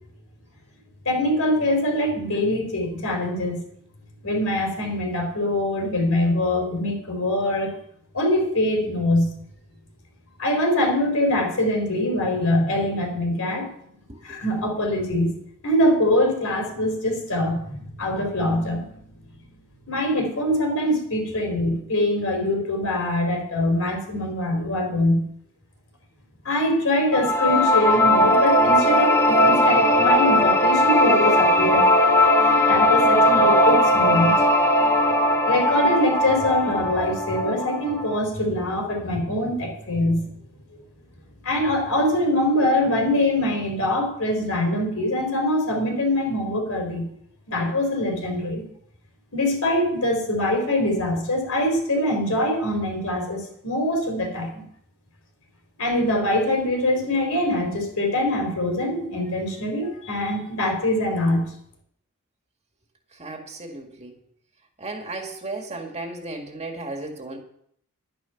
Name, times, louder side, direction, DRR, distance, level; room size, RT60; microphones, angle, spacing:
voice 1, 1.0-3.6 4.2-7.7 8.1-9.4 10.4-13.7 14.2-15.3 15.6-19.0 19.9-25.3 26.4-31.9 32.4-34.4 35.4-40.3 41.4-47.1 47.5-48.6 49.3-54.6 55.8-61.5, left 1 dB, 75° left, 3 dB, 4.3 m, -23 dB
sound 1, 27.1-38.2, left 1 dB, 15° left, 1.1 m, -18 dB
voice 2, 63.2-64.1 64.8-67.4, right 2 dB, 30° right, 3 dB, 1.9 m, -35 dB
11.0 x 10.0 x 5.8 m, 0.68 s
head